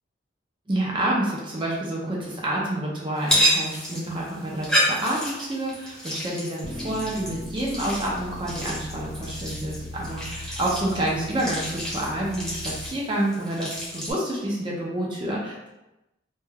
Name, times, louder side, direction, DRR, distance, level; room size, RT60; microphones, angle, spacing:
voice 1, 0.7-15.7, right 1 dB, 25° right, -3 dB, 0.4 m, -28 dB
sound 1, 3.2-14.1, equal, 5° left, 0.7 m, -30 dB
sound 2, 6.6-12.9, left 1 dB, 90° left, 0.7 m, -39 dB
2.2 x 2.2 x 3.2 m, 0.97 s
head